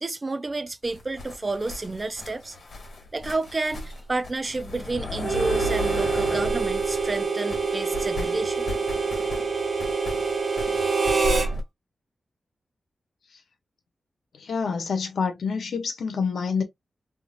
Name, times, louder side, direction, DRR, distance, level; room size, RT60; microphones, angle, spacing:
voice 1, 0.0-2.6 3.1-8.7, right 2 dB, 25° right, 0.4 m, -30 dB
sound 1, 0.8-7.2 7.5-11.6, left 1 dB, 60° left, 2.0 m, -35 dB
Harmonica, 5.2-11.5, right 4 dB, 55° right, 1.1 m, -26 dB
voice 2, 14.4-16.6, left 5 dB, 85° left, 0.9 m, -27 dB
3.6 x 2.7 x 2.4 m
wide cardioid pair, 165°, 0 cm